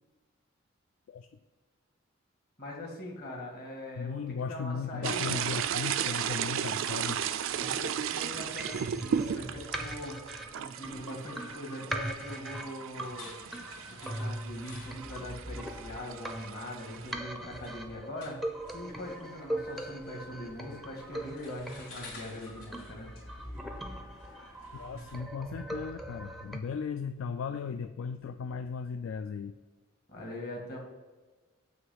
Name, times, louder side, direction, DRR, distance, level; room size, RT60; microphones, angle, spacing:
voice 1, 2.6-5.4 7.5-13.3 14.0-18.4 18.7-23.1 30.1-30.8, left 1 dB, 45° left, -1 dB, 1.9 m, -42 dB
voice 2, 4.0-7.2 20.7-20.8 24.7-29.6, left 6 dB, 70° left, 9 dB, 0.3 m, -37 dB
sound 1, 5.0-17.1, right 8 dB, 70° right, 0.4 m, -35 dB
sound 2, 8.6-26.6, right 1 dB, ahead, 0.5 m, -41 dB
sound 3, 12.8-25.1, left 2 dB, 90° left, 2.2 m, -52 dB
7.9 x 3.1 x 5.8 m, 1.3 s
head